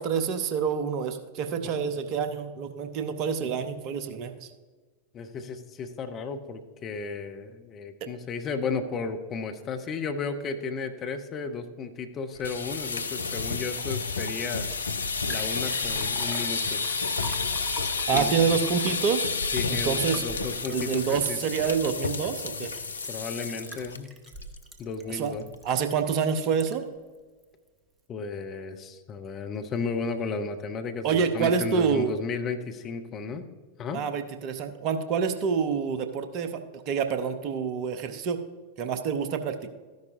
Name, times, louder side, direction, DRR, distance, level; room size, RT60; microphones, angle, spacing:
voice 1, 0.0-4.5 8.0-8.1 18.1-19.3 19.7-20.2 20.7-22.7 25.1-25.3 25.6-26.8 31.0-32.1 33.9-38.4 38.8-39.7, right 6 dB, 40° right, 9 dB, 0.8 m, -27 dB
voice 2, 5.1-14.7 15.3-16.8 18.1-18.4 19.5-21.4 23.1-24.1 24.8-25.5 28.1-33.5 33.8-34.0, left 4 dB, 30° left, 6 dB, 0.8 m, -34 dB
sound 1, 12.3-24.0 24.3-24.6 24.9-25.0 25.4-25.8, left 4 dB, 75° left, 0.5 m, -30 dB
Liquid, 14.8-14.9 15.1-27.0 27.4-27.5, right 2 dB, 20° right, 1.1 m, -45 dB
13.0 x 10.5 x 2.6 m, 1.4 s
figure-of-eight pair, 90°, 0 cm